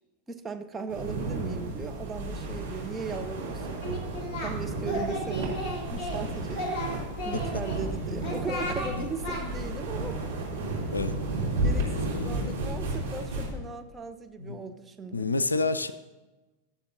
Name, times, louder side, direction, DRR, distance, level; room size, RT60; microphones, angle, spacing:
voice 1, 0.3-3.9 4.4-5.6 5.8-10.2 11.6-15.3, right 4 dB, 15° right, 5 dB, 0.7 m, -38 dB
sound 1, 0.9-13.5, right 2 dB, 70° right, 3.1 m, -32 dB
Singing, 3.8-4.5 4.8-6.2 6.5-7.8 8.2-8.9 9.2-9.4, equal, 25° left, 3.1 m, -34 dB
voice 2, 11.9-12.6 14.4-14.6 15.1-15.9, left 3 dB, 80° left, 13 dB, 0.4 m, -29 dB
21.5 x 7.2 x 2.7 m, 1.1 s
figure-of-eight pair, 90°, 0 cm